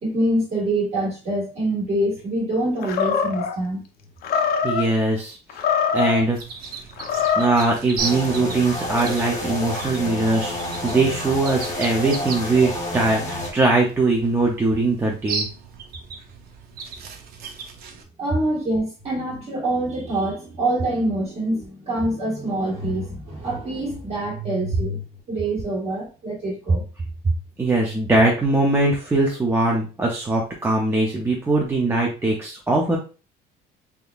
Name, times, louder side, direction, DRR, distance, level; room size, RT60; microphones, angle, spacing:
voice 1, 0.0-3.8 18.2-25.0 25.3-26.8, right 1 dB, 35° right, -1 dB, 1.5 m, -25 dB
Animal, 2.8-3.6 4.2-4.9 5.5-6.2 6.9-7.6, left 7 dB, 60° left, 0.5 m, -23 dB
voice 2, 4.3-5.4 5.9-6.4 7.4-15.5 27.6-33.0, right 2 dB, 10° right, -1 dB, 0.4 m, -21 dB
sound 1, 6.3-18.0, right 5 dB, 55° right, 0.6 m, -36 dB
sound 2, 8.0-13.5, left 1 dB, 20° left, 0.8 m, -29 dB
3.5 x 3.4 x 2.3 m, 0.35 s
cardioid pair, 170°, 18 cm